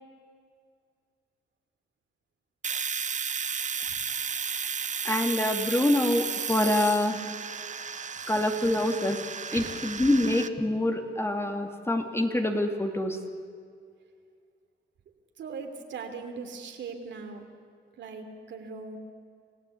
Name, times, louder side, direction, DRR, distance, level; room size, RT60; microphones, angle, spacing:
Domestic sounds home sounds, 2.6-10.5, right 6 dB, 40° right, 1.0 m, -33 dB
voice 1, 5.0-7.2 8.3-9.2 9.5-13.2, left 1 dB, 10° left, 5 dB, 2.2 m, -26 dB
voice 2, 7.5-7.9 9.5-9.8 15.4-17.4 18.0-19.0, right 5 dB, 65° right, 5 dB, 3.0 m, -40 dB
27.5 x 16.0 x 8.4 m, 2.3 s
cardioid pair, 90°, 20 cm